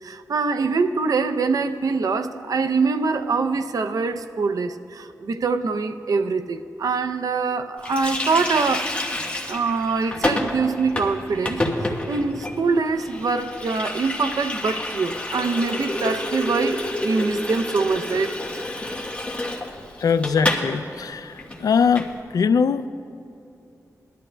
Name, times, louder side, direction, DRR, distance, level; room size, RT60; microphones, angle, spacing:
voice 1, 0.0-8.9 9.5-18.4, right 4 dB, 75° right, 9 dB, 0.5 m, -24 dB
Water tap faucet, 7.8-20.7 21.0-21.1 21.4-22.1, left 1 dB, 20° left, 1.3 m, -29 dB
voice 2, 20.0-22.9, left 6 dB, 80° left, 12 dB, 0.4 m, -21 dB
21.0 x 11.5 x 2.2 m, 2.6 s
wide cardioid pair, 115°, 6 cm